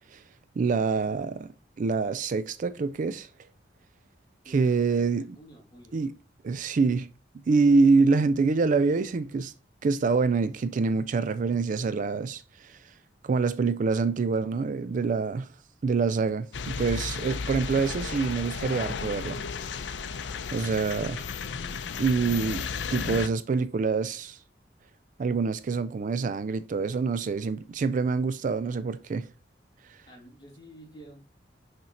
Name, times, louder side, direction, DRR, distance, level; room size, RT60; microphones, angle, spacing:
voice 1, 0.6-1.5 1.8-3.3 4.5-5.4 5.9-6.1 6.4-7.1 7.5-9.5 9.8-12.8 13.2-15.5 15.8-19.4 20.5-21.2 22.0-22.6 22.9-24.4 25.2-29.3, right 4 dB, 45° right, 0.3 m, -26 dB
voice 2, 4.4-4.7 5.2-6.0 30.1-31.2, right 1 dB, 25° left, 2.4 m, -50 dB
sound 1, 16.5-23.3, left 5 dB, 80° left, 0.6 m, -34 dB
6.3 x 4.4 x 4.3 m
head